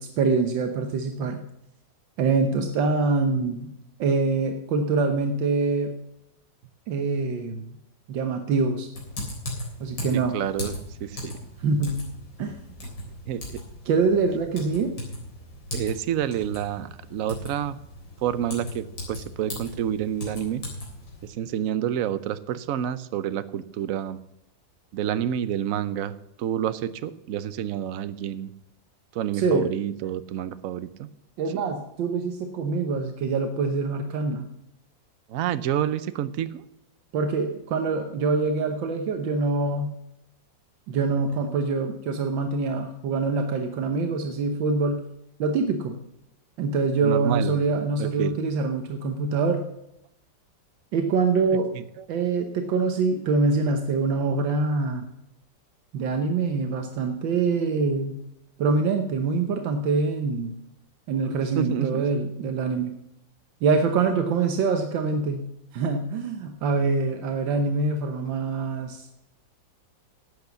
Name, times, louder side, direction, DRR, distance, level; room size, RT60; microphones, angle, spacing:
voice 1, 0.0-1.4 2.2-3.7 4.0-6.0 6.9-7.7 8.1-8.9 9.8-10.3 11.6-12.0 12.4-12.6 13.9-14.9 29.3-29.7 31.4-34.5 37.1-39.9 40.9-45.0 45.4-46.0 46.6-49.6 50.9-51.7 52.1-55.0 55.9-58.2 58.6-60.5 61.1-62.9 63.6-65.5 65.7-69.1, right 4 dB, 80° right, 6 dB, 1.7 m, -25 dB
Typing, 8.9-21.3, left 1 dB, 80° left, 4.6 m, -38 dB
voice 2, 10.1-10.7 11.0-11.4 12.8-12.9 13.3-13.6 15.7-17.8 18.2-20.6 21.2-24.2 24.9-28.5 29.1-31.1 35.3-36.6 47.0-47.5 48.0-48.3 51.7-52.1 61.3-62.1 64.1-64.3, right 10 dB, 65° right, 14 dB, 0.9 m, -29 dB
12.0 x 8.1 x 7.0 m, 0.82 s
omnidirectional pair, 2.0 m